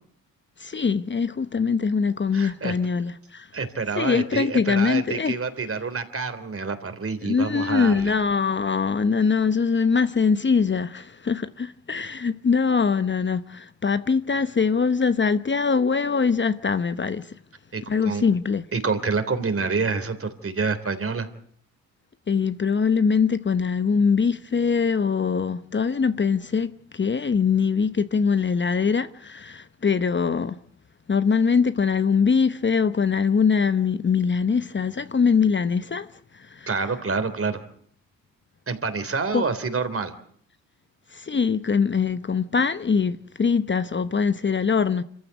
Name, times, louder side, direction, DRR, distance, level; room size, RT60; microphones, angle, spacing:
voice 1, 0.6-3.5 4.0-5.4 7.2-17.3 17.9-18.6 22.3-30.6 31.1-36.1 36.3-36.7 39.3-39.4 41.1-45.0, left 5 dB, 30° left, 1.1 m, -22 dB
voice 2, 2.3-2.7 3.5-8.1 17.7-18.2 18.7-21.3 36.7-37.6 38.7-40.1, right 4 dB, 40° right, 3.4 m, -27 dB
26.0 x 14.5 x 8.3 m
supercardioid pair, 60°, 35 cm